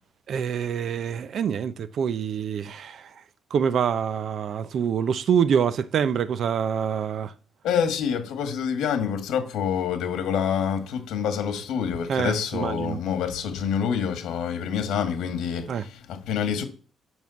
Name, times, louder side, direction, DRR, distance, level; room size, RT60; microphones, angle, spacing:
voice 1, 0.3-3.1 3.5-7.3 12.1-13.0 15.7-15.8, right 7 dB, 45° right, 0.6 m, -26 dB
voice 2, 7.6-16.6, left 7 dB, 80° left, 2.0 m, -27 dB
7.3 x 6.2 x 7.1 m
cardioid pair, 180°, 0 cm